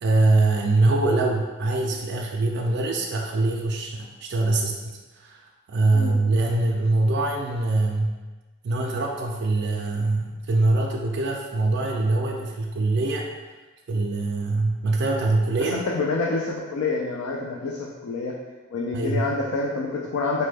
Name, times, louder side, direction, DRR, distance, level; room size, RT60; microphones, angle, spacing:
voice 1, 0.0-5.4 5.7-8.2 8.6-13.3 13.9-15.9 18.9-19.3, right 2 dB, 55° right, 0 dB, 0.3 m, -23 dB
voice 2, 15.7-18.3 18.7-20.4, left 3 dB, 80° left, -2 dB, 0.4 m, -27 dB
4.1 x 2.1 x 3.3 m, 1.3 s
head